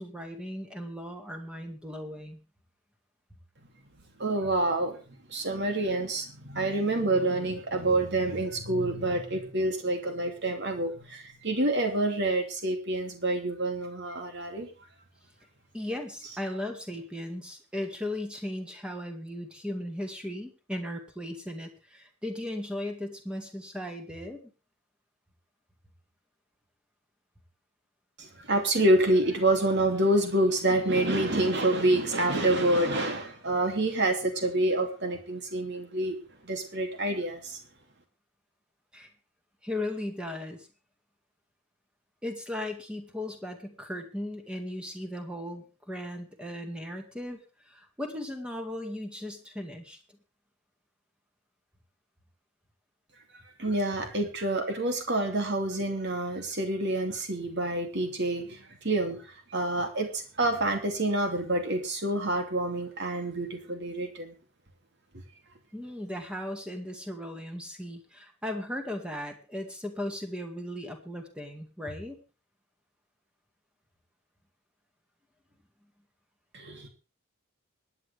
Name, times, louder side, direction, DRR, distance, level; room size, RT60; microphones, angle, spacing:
voice 1, 0.0-2.4 15.7-24.4 38.9-39.1 39.6-40.7 42.2-47.4 47.7-50.0 65.7-72.2, left 1 dB, 5° right, 4 dB, 2.1 m, -37 dB
voice 2, 4.2-5.0 5.3-14.7 28.2-36.1 36.4-37.6 53.3-58.6 58.8-59.2 59.5-64.3 76.5-76.9, right 1 dB, 50° right, 4 dB, 2.9 m, -27 dB
25.0 x 9.8 x 3.5 m, 0.34 s
head